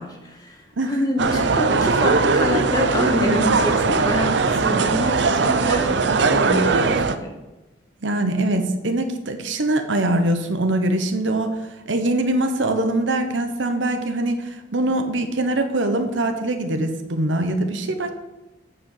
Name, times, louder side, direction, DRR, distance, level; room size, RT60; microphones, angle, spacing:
voice 1, 0.0-7.3, left 1 dB, 20° left, 2 dB, 1.3 m, -26 dB
sound 1, 1.2-7.2, right 4 dB, 75° right, 0.5 m, -19 dB
voice 2, 8.0-11.6 11.9-18.1, right 1 dB, 90° right, 6 dB, 1.0 m, -23 dB
8.6 x 5.0 x 6.7 m, 1.0 s
head